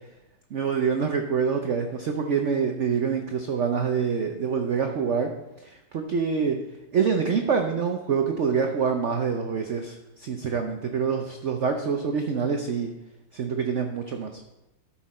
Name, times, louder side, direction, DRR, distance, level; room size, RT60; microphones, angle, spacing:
voice 1, 0.5-5.3 5.9-6.6 6.9-12.9 13.3-14.3, right 6 dB, 85° right, 4 dB, 0.6 m, -26 dB
13.0 x 5.9 x 4.2 m, 0.95 s
omnidirectional pair, 2.2 m